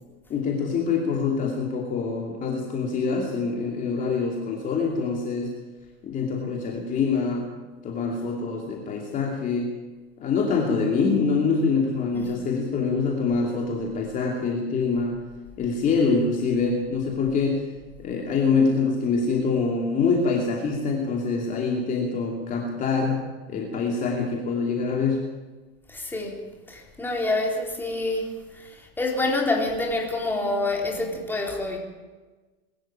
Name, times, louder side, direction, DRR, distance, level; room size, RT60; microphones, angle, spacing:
voice 1, 0.3-5.5 6.0-7.5 7.8-9.8 10.2-15.2 15.6-17.7 18.0-25.3, left 4 dB, 25° left, 0 dB, 2.8 m, -25 dB
voice 2, 25.9-26.4 26.7-31.8, left 2 dB, 5° left, 0 dB, 3.9 m, -27 dB
21.5 x 13.5 x 8.9 m, 1.2 s
supercardioid pair, 145°, 31 cm